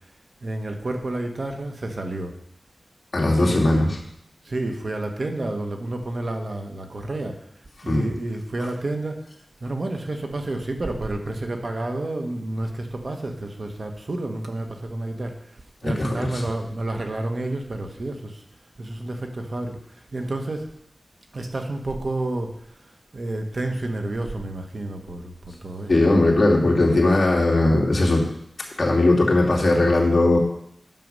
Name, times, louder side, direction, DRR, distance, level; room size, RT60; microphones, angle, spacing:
voice 1, 0.4-2.3 3.4-3.6 4.4-7.4 7.8-9.2 9.6-18.4 18.8-20.7 21.3-22.5 23.1-25.9, right 2 dB, 50° right, 4 dB, 1.2 m, -30 dB
voice 2, 3.1-4.0 7.9-8.0 15.8-16.4 25.9-28.3 28.8-30.4, left 2 dB, 45° left, -2 dB, 2.5 m, -19 dB
9.2 x 6.9 x 5.4 m, 0.74 s
wide cardioid pair, 90°, 0 cm